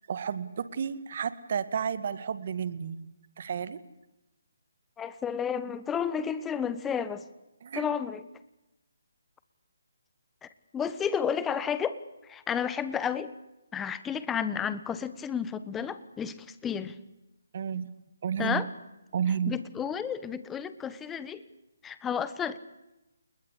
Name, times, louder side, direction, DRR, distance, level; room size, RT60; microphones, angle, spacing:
voice 1, 0.1-3.0 3.4-3.8 7.6-7.9 17.5-17.9 18.2-18.6 19.1-19.5, right 7 dB, 50° right, 14 dB, 2.1 m, -31 dB
voice 2, 5.0-7.3 7.7-8.2 10.4-12.0 12.2-13.3 13.7-17.0 18.4-18.7 19.5-21.4 21.8-22.6, left 7 dB, 10° left, 13 dB, 1.3 m, -31 dB
29.5 x 21.0 x 8.4 m, 0.96 s
figure-of-eight pair, 150°, 0 cm